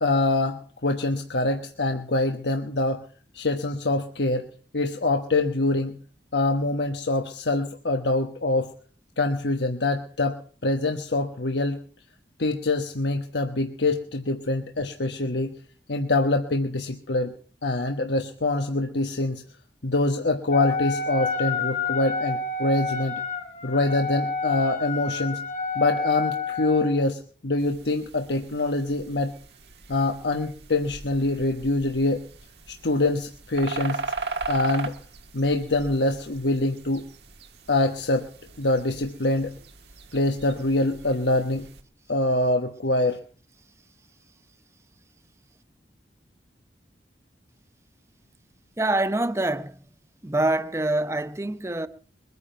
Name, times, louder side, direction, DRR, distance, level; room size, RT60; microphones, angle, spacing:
voice 1, 0.0-3.0 3.3-6.0 6.3-8.7 9.2-11.8 12.4-15.6 15.9-17.3 17.6-19.4 19.8-23.2 23.6-25.4 25.7-29.3 29.9-32.2 32.7-34.0 34.5-34.9 35.3-37.0 37.7-38.3 38.6-39.5 40.1-41.7 42.1-43.2, left 2 dB, 85° left, 1.2 m, -25 dB
Wind instrument woodwind instrument, 20.5-27.0, left 4 dB, 40° left, 1.7 m, -29 dB
sound 1, 27.6-41.8, right 3 dB, 75° right, 1.6 m, -39 dB
voice 2, 48.8-49.9 50.2-51.9, right 2 dB, 15° right, 0.7 m, -25 dB
22.5 x 9.7 x 5.8 m
head